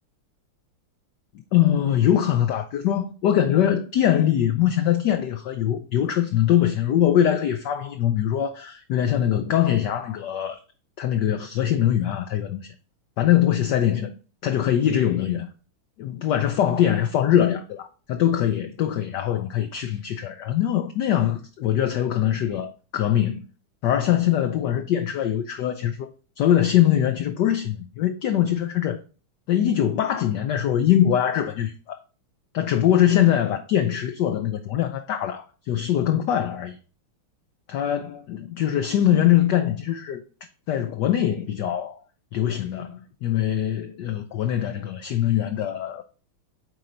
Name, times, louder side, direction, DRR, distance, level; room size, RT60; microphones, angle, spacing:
voice 1, 1.5-10.6 11.0-12.7 13.2-14.1 14.4-15.5 16.0-23.5 23.8-26.1 26.4-29.0 29.5-32.0 32.5-36.8 37.7-40.2 40.7-42.0 42.3-46.0, left 11 dB, 75° left, 1.0 m, -22 dB
7.9 x 4.2 x 3.8 m
omnidirectional pair, 2.4 m